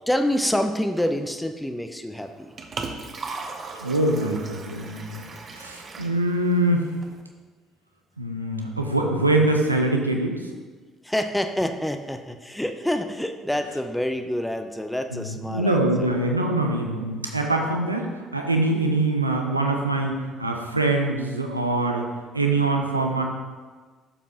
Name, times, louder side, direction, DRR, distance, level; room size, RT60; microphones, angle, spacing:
voice 1, 0.1-2.5 11.0-16.1, left 1 dB, 5° left, 7 dB, 0.6 m, -27 dB
Liquid, 2.2-7.2, right 4 dB, 40° right, 1.0 m, -38 dB
voice 2, 3.8-5.3 5.5-6.9 8.2-10.4 15.1-22.1 22.3-23.2, right 2 dB, 90° right, 2 dB, 0.7 m, -24 dB
12.0 x 7.2 x 2.9 m, 1.4 s
figure-of-eight pair, 50°, 0 cm